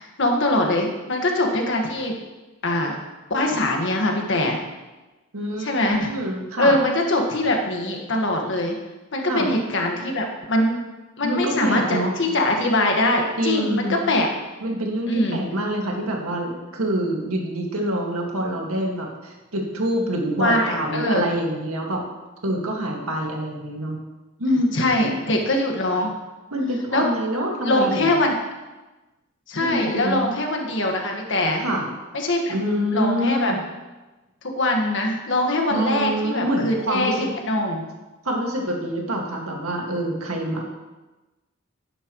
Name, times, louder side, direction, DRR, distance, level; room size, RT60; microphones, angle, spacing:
voice 1, 0.0-2.1 2.6-3.0 3.3-4.6 5.6-6.1 6.6-8.7 9.1-10.8 11.2-14.3 15.1-15.4 20.4-21.2 24.5-26.1 26.9-27.1 27.6-28.3 29.5-31.6 32.1-32.5 32.9-33.5 34.6-37.9, left 1 dB, 60° left, 1 dB, 1.6 m, -22 dB
voice 2, 5.3-6.7 9.2-9.5 11.2-12.1 13.4-14.0 14.6-22.0 22.4-24.0 24.4-24.7 25.0-25.1 26.5-28.2 29.6-30.3 31.6-31.8 32.5-33.6 35.7-37.3 38.2-40.7, equal, 85° right, 0 dB, 2.0 m, -26 dB
12.0 x 10.0 x 3.1 m, 1.1 s
head